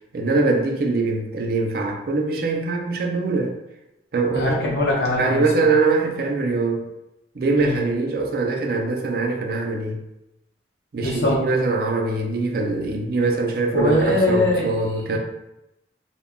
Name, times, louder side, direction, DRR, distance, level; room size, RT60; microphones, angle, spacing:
voice 1, 0.1-3.5 4.1-4.6 5.2-6.9 7.3-10.0 10.9-15.2, right 3 dB, 55° right, 2 dB, 0.4 m, -22 dB
voice 2, 4.3-5.4 7.6-7.8 11.0-11.4 13.7-14.7, left 1 dB, 65° left, -4 dB, 0.7 m, -21 dB
2.1 x 2.1 x 3.6 m, 0.90 s
head